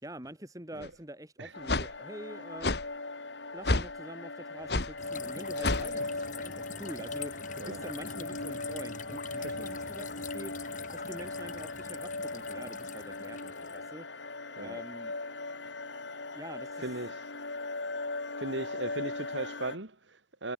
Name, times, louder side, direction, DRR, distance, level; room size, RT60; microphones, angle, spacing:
voice 1, 0.0-2.7 3.5-10.5 10.9-14.1 14.6-15.1 16.3-16.8, right 1 dB, 20° right, 3.8 m, -46 dB
sound 1, 0.8-0.9 1.7-1.9 2.6-2.8 3.6-3.9 4.7-4.9 5.6-5.9, left 2 dB, 60° left, 2.0 m, -28 dB
sound 2, 1.5-19.8, left 2 dB, 80° left, 4.3 m, -39 dB
sound 3, 5.0-13.9, left 5 dB, 45° left, 5.0 m, -45 dB
voice 2, 16.8-17.3 18.4-20.5, right 2 dB, 85° right, 2.9 m, -38 dB
head